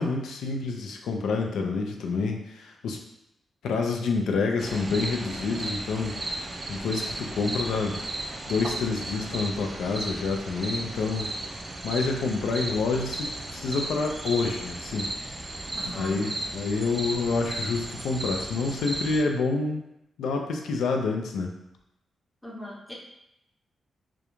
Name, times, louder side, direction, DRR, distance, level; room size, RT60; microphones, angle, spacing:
voice 1, 0.0-3.0 3.6-6.4 6.7-8.0 8.5-11.3 11.8-15.1 16.0-19.8 20.2-21.5, left 4 dB, 85° left, 3 dB, 0.3 m, -28 dB
sound 1, 4.6-19.2, right 2 dB, 30° right, 0.3 m, -35 dB
voice 2, 15.7-16.3 22.4-22.9, left 1 dB, ahead, -3 dB, 0.6 m, -38 dB
2.3 x 2.2 x 2.9 m, 0.84 s
cardioid pair, 80°, 0 cm